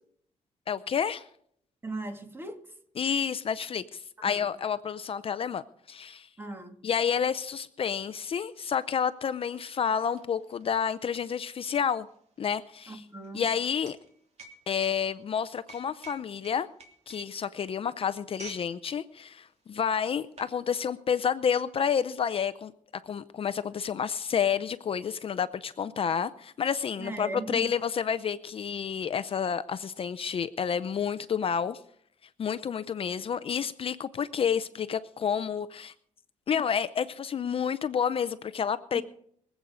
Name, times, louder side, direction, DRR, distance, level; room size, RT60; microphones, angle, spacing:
voice 1, 0.7-1.3 3.0-5.6 5.9-6.3 6.8-12.1 12.4-13.0 13.3-14.0 14.7-16.7 17.1-22.7 23.0-31.8 32.4-35.9 36.5-39.0, left 7 dB, 45° left, 0.5 m, -29 dB
voice 2, 1.8-2.7 4.2-4.5 6.4-6.8 12.9-13.5 27.0-27.7 38.9-39.0, right 2 dB, 15° right, 2.1 m, -38 dB
sound 1, 8.4-8.5 8.7-18.7 19.0-19.3 19.9-20.6, right 3 dB, 55° right, 3.0 m, -51 dB
24.0 x 8.2 x 5.0 m
cardioid pair, 135°, 13 cm